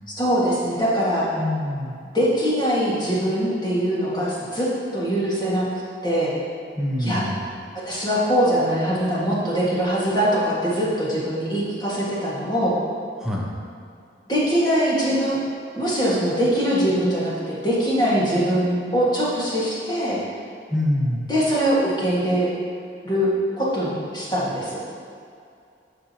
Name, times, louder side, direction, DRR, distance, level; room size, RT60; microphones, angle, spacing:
voice 1, 0.2-1.3 2.1-4.7 4.9-5.7 6.0-6.3 7.0-7.2 7.8-12.7 14.3-15.4 15.8-20.2 21.3-22.5 23.0-23.3 23.6-24.8, equal, 25° left, -8 dB, 1.9 m, -22 dB
voice 2, 1.4-1.9 6.7-7.5 13.2-13.5 20.7-21.2, left 1 dB, 5° right, -4 dB, 1.0 m, -25 dB
13.5 x 5.1 x 3.0 m, 2.4 s
head